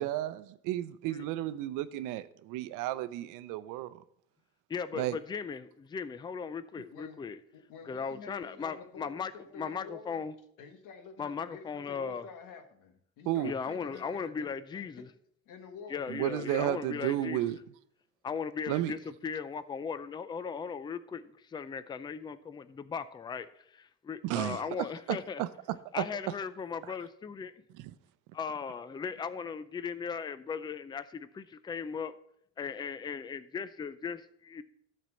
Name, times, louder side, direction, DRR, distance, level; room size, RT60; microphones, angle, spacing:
voice 1, 0.0-4.0 5.0-5.2 13.3-13.5 16.1-17.6 18.7-18.9 24.2-25.5 26.0-26.1 27.8-27.9, right 14 dB, 90° right, 0.7 m, -33 dB
voice 2, 4.7-7.4 7.8-10.3 11.2-12.3 13.4-15.1 15.9-17.5 18.2-25.4 25.9-27.5 28.3-32.2 32.6-34.6, left 6 dB, 15° left, 0.4 m, -38 dB
voice 3, 7.5-10.3 10.6-14.8 15.4-16.5, left 5 dB, 80° left, 1.5 m, -49 dB
13.0 x 4.4 x 6.3 m
cardioid pair, 140°, 31 cm